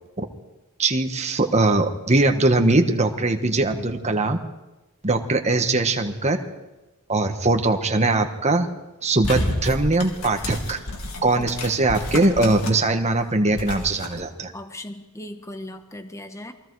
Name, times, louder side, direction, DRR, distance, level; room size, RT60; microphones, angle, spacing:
voice 1, 0.8-4.4 5.0-6.4 7.1-8.7 9.0-10.8 11.2-14.5, right 2 dB, 30° right, 5 dB, 1.4 m, -21 dB
sound 1, 9.2-12.9 13.2-14.1, left 1 dB, 75° left, 3.5 m, -30 dB
voice 2, 14.5-16.5, left 1 dB, 15° left, 7 dB, 1.3 m, -37 dB
28.5 x 21.5 x 4.8 m, 1.0 s
head